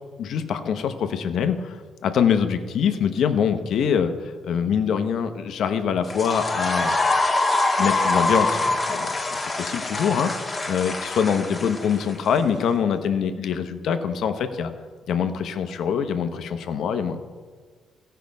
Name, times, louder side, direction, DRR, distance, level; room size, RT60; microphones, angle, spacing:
voice 1, 0.2-4.1 4.4-7.0 7.8-10.3 10.7-14.7 15.1-17.2, left 7 dB, 70° left, 8 dB, 0.9 m, -24 dB
sound 1, 6.0-12.4, left 2 dB, 25° left, 1.4 m, -24 dB
15.0 x 5.6 x 5.3 m, 1.6 s
cardioid pair, 90°, 0 cm